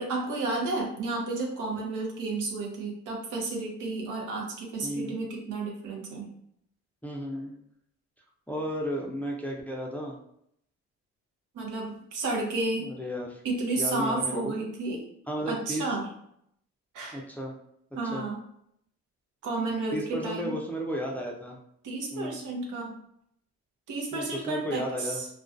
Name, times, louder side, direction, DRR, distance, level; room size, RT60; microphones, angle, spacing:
voice 1, 0.0-6.3 11.5-12.9 13.4-15.0 15.5-16.1 16.9-17.2 18.0-18.4 19.4-20.5 21.8-23.0 23.9-25.3, right 2 dB, 80° right, -1 dB, 0.8 m, -32 dB
voice 2, 4.8-5.2 7.0-7.6 8.5-10.2 12.8-13.4 13.8-14.6 15.3-15.9 17.1-17.5 18.1-18.3 19.9-21.6 22.1-22.4 24.1-25.2, equal, 5° left, -1 dB, 0.4 m, -33 dB
2.3 x 2.2 x 2.5 m, 0.71 s
cardioid pair, 90°, 30 cm